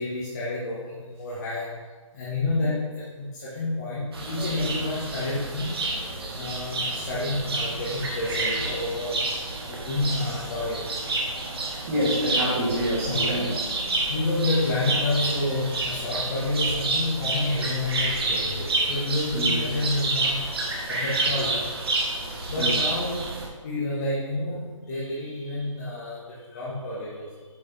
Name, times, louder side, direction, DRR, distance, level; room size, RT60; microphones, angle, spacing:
voice 1, 0.0-5.9 6.3-9.2 9.6-10.9 13.1-13.3 14.1-21.8 22.5-23.3 23.6-27.4, left 2 dB, 30° left, -9 dB, 1.5 m, -29 dB
sound 1, 4.1-23.5, right 2 dB, 45° right, 1.4 m, -29 dB
voice 2, 11.9-13.5 19.3-19.6 22.6-22.7, equal, 25° right, -8 dB, 1.9 m, -26 dB
8.3 x 5.3 x 3.5 m, 1.5 s
figure-of-eight pair, 155°, 17 cm